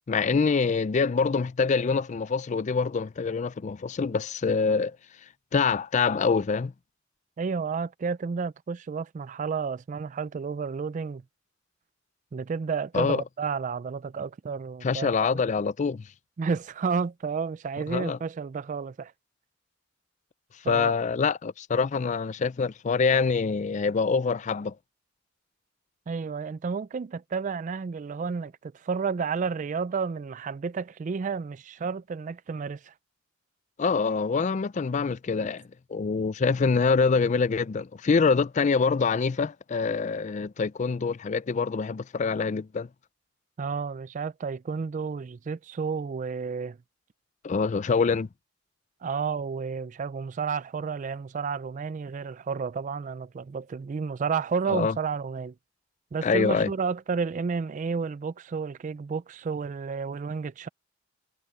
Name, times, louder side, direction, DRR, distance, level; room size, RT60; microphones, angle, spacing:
voice 1, 0.1-5.0 5.5-6.7 12.9-13.2 14.8-16.1 17.9-18.2 20.7-24.7 33.8-35.6 35.9-42.9 47.4-48.3 54.7-54.9 56.2-56.7, left 5 dB, 40° left, 0.4 m, -25 dB
voice 2, 7.4-11.2 12.3-15.4 16.4-19.1 20.6-20.9 26.1-32.9 43.6-46.8 49.0-55.5 56.1-60.7, right 5 dB, 40° right, 0.3 m, -31 dB
head